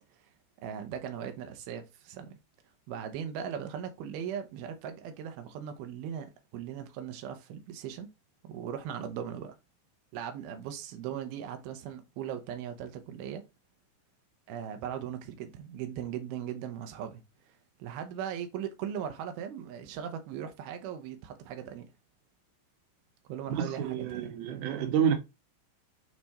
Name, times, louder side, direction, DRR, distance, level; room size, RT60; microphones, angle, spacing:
voice 1, 0.6-2.4 2.9-8.1 8.4-9.5 10.1-13.4 14.5-17.5 17.8-21.9 23.3-24.4, right 9 dB, 85° right, 2.1 m, -39 dB
voice 2, 23.5-25.1, right 8 dB, 70° right, 2.4 m, -29 dB
9.4 x 3.6 x 4.3 m
omnidirectional pair, 5.8 m